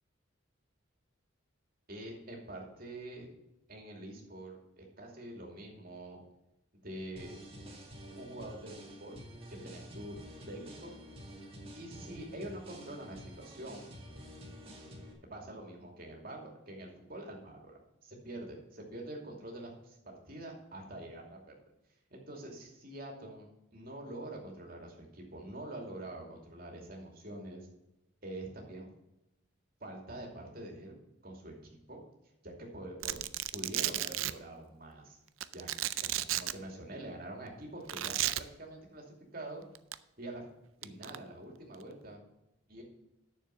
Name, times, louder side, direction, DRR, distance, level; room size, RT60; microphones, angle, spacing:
voice 1, 1.9-3.3 3.7-6.2 6.7-7.3 8.1-9.2 9.5-10.2 10.5-11.0 11.7-13.9 15.3-21.5 22.1-27.7 28.2-28.9 29.8-30.9 31.2-32.0 32.4-33.2 33.5-35.2 35.5-35.7 36.0-39.0 39.3-39.7 40.2-40.4 40.8-42.2 42.7-42.8, right 1 dB, 45° right, 0 dB, 2.6 m, -45 dB
sound 1, 7.2-15.1, equal, 30° right, 2.1 m, -49 dB
Domestic sounds home sounds, 33.0-34.3 35.4-36.5 37.9-38.4 39.7-39.9 40.8-41.2, right 14 dB, 85° right, 0.5 m, -33 dB
9.4 x 6.9 x 5.8 m, 0.89 s
head